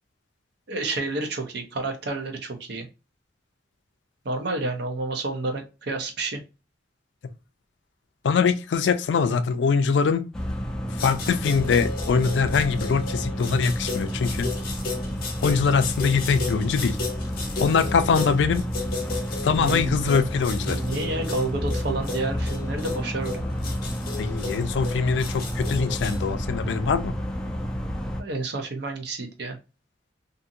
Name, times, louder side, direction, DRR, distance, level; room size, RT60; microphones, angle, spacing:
voice 1, 0.7-2.9 4.2-6.4 19.6-20.2 20.7-23.4 28.2-29.6, right 3 dB, 65° right, 0.7 m, -30 dB
voice 2, 8.2-10.2 10.9-14.5 15.4-17.0 17.6-18.6 19.4-20.8 24.2-27.1, left 5 dB, 70° left, 0.4 m, -23 dB
sound 1, 10.3-28.2, equal, 5° left, 0.4 m, -30 dB
sound 2, 11.0-26.2, left 4 dB, 55° left, 0.8 m, -35 dB
2.6 x 2.6 x 2.5 m
head